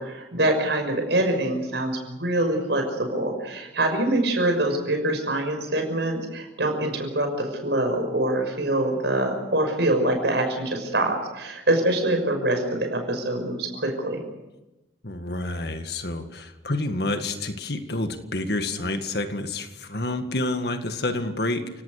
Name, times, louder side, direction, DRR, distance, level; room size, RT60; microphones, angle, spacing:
voice 1, 0.0-14.2, right 1 dB, 65° right, 4 dB, 6.1 m, -25 dB
voice 2, 15.0-21.8, left 2 dB, 55° left, 7 dB, 1.9 m, -28 dB
30.0 x 18.5 x 6.6 m, 1.0 s
head